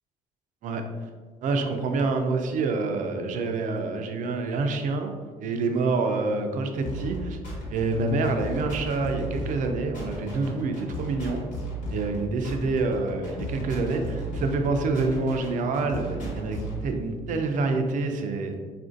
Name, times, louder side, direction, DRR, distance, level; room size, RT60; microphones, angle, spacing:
voice 1, 1.4-5.1 5.4-7.4 7.7-11.5 11.9-18.5, right 3 dB, 60° right, 5 dB, 0.4 m, -27 dB
sound 1, 6.8-16.8, right 1 dB, 70° left, 1.1 m, -35 dB
3.6 x 2.5 x 2.5 m, 1.6 s
cardioid pair, 85°, 15 cm